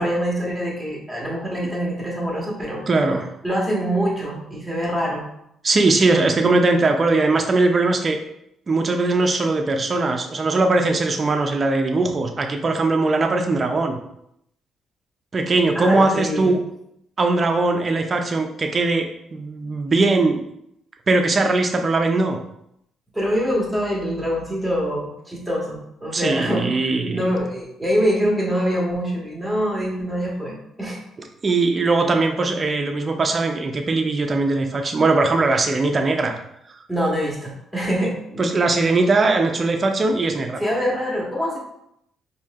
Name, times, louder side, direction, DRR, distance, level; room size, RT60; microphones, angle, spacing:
voice 1, 0.0-2.8 3.4-5.2 15.7-16.5 23.1-31.0 36.9-38.4 40.6-41.6, equal, ahead, -4 dB, 1.5 m, -24 dB
voice 2, 2.9-3.3 5.6-8.2 8.7-14.0 15.3-16.6 17.2-20.4 21.1-22.4 26.1-27.3 31.4-36.4 38.4-40.6, right 3 dB, 35° right, 5 dB, 0.5 m, -20 dB
4.4 x 2.7 x 2.4 m, 0.76 s
cardioid pair, 90°, 0 cm